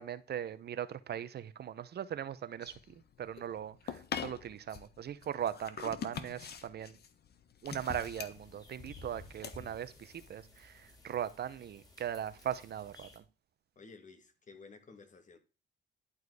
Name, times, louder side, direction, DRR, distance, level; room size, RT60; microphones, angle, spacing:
voice 1, 0.0-2.7 3.2-7.0 7.6-13.2, right 9 dB, 55° right, 0.7 m, -39 dB
sound 1, 2.6-10.2, left 7 dB, 55° left, 1.2 m, -44 dB
sound 2, 7.6-13.2, left 1 dB, 20° left, 3.7 m, -56 dB
voice 2, 13.8-15.4, left 4 dB, 40° left, 2.2 m, -54 dB
11.5 x 4.6 x 4.7 m
cardioid pair, 90°, 20 cm